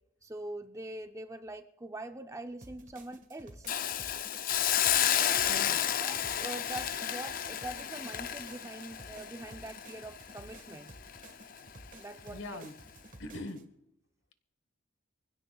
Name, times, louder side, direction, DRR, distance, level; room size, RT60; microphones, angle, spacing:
voice 1, 0.2-3.7 5.1-5.7 6.0-10.9 12.0-12.6, right 2 dB, 15° right, 8 dB, 0.5 m, -43 dB
sound 1, 2.6-13.6, right 1 dB, 40° right, 1.4 m, -53 dB
Hiss, 3.7-10.7 11.1-11.3, left 10 dB, 45° left, 0.5 m, -31 dB
voice 2, 5.5-5.9 12.3-12.8 13.2-13.7, left 1 dB, 60° left, 10 dB, 1.2 m, -42 dB
24.5 x 16.0 x 2.3 m, 0.86 s
head